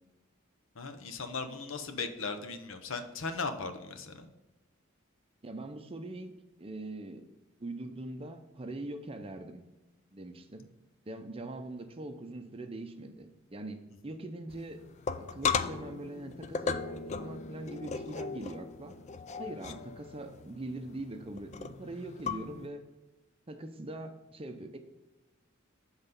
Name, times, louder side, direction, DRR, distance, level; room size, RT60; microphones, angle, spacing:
voice 1, 0.8-4.3, left 4 dB, 70° left, 7 dB, 0.7 m, -37 dB
voice 2, 5.4-7.2 7.6-9.6 10.1-10.7 11.1-14.9 15.2-19.0 19.4-22.8 23.5-24.8, right 2 dB, 25° right, 7 dB, 0.6 m, -42 dB
sound 1, 14.5-22.7, left 5 dB, 35° left, 0.3 m, -37 dB
7.7 x 4.0 x 5.3 m, 1.0 s
head